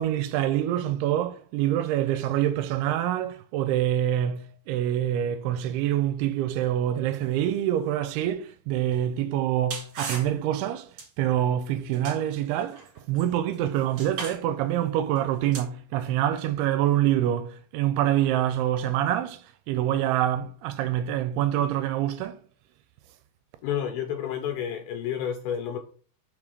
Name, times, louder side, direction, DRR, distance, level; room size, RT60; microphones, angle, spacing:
voice 1, 0.0-10.9 11.2-12.8 13.1-22.4, right 11 dB, 85° right, 2.5 m, -26 dB
sound 1, 8.9-9.0 9.7-10.3 11.0-11.1 11.9-13.6 13.9-14.4 15.2-15.3 15.5-15.6, right 4 dB, 50° right, 2.5 m, -37 dB
voice 2, 23.6-25.8, left 9 dB, 80° left, 2.2 m, -30 dB
6.1 x 3.7 x 4.9 m
omnidirectional pair, 4.7 m